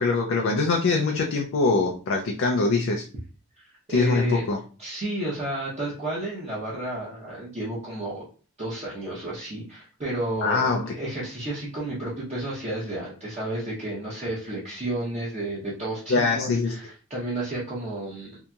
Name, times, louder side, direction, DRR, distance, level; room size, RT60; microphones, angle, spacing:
voice 1, 0.0-3.1 3.9-4.6 10.4-10.9 16.1-16.7, left 3 dB, 60° left, 2 dB, 0.4 m, -23 dB
voice 2, 3.6-4.5 4.8-8.2 8.6-18.4, right 1 dB, 30° right, -8 dB, 0.8 m, -32 dB
2.8 x 2.6 x 2.3 m, 0.38 s
head